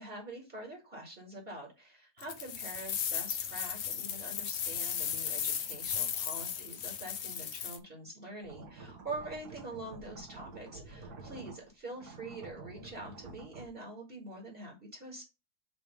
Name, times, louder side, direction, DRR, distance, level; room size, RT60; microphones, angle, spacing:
voice 1, 0.0-15.2, right 2 dB, 35° right, -1 dB, 2.3 m, -45 dB
sound 1, 2.2-7.8, left 8 dB, 55° left, 0.8 m, -36 dB
sound 2, 8.4-11.7 11.9-13.7, right 3 dB, 70° right, 1.5 m, -49 dB
6.0 x 3.4 x 5.1 m, 0.27 s
omnidirectional pair, 1.7 m